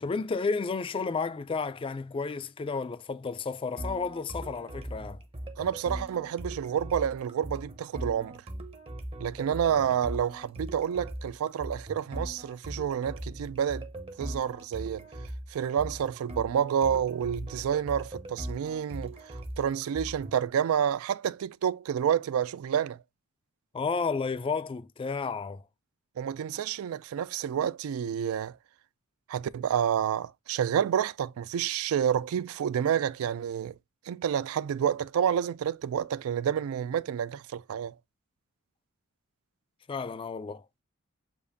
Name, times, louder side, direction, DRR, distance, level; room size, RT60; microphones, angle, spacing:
voice 1, 0.0-5.2 9.5-9.6 23.7-25.6 39.9-40.6, left 4 dB, 25° left, 0.3 m, -32 dB
sound 1, 3.8-20.5, right 1 dB, 25° right, 0.7 m, -40 dB
voice 2, 5.6-8.4 9.2-13.9 14.2-15.1 15.5-23.0 26.2-28.6 29.3-33.7 34.1-37.9, right 8 dB, 75° right, 0.3 m, -29 dB
6.9 x 2.5 x 2.6 m
head